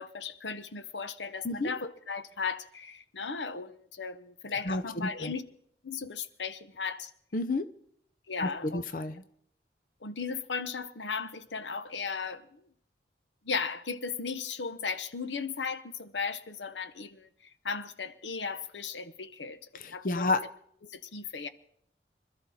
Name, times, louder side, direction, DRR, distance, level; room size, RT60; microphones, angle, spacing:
voice 1, 0.0-5.4 5.8-7.1 8.3-8.8 10.0-12.6 13.4-17.3 17.6-19.6 19.9-20.3 20.9-21.5, left 5 dB, 85° left, 0.9 m, -36 dB
voice 2, 4.6-5.3 7.3-7.7 8.4-9.2 19.7-20.4, left 2 dB, 50° left, 0.6 m, -31 dB
25.5 x 13.0 x 4.2 m
head